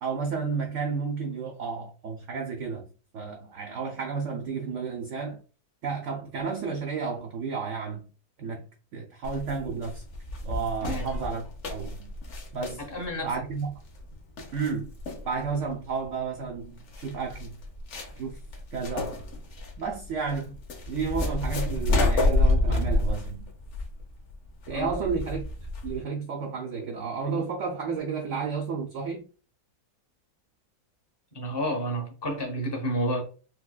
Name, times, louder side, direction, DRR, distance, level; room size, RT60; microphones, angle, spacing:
voice 1, 0.0-2.8 3.1-5.4 5.8-8.1 8.4-8.6 8.9-10.0 10.4-12.1 12.5-12.9 13.2-13.7 14.5-14.9 15.3-17.5 18.2-18.4 18.7-19.2 19.8-20.5 20.9-23.5 24.7-25.5 25.8-29.2, right 5 dB, 65° right, 0.8 m, -32 dB
sound 1, 9.2-26.0, left 2 dB, 55° left, 0.9 m, -29 dB
voice 2, 12.8-13.3 24.7-24.9 31.3-33.2, equal, 20° left, 0.6 m, -30 dB
4.2 x 2.1 x 2.3 m
omnidirectional pair, 1.7 m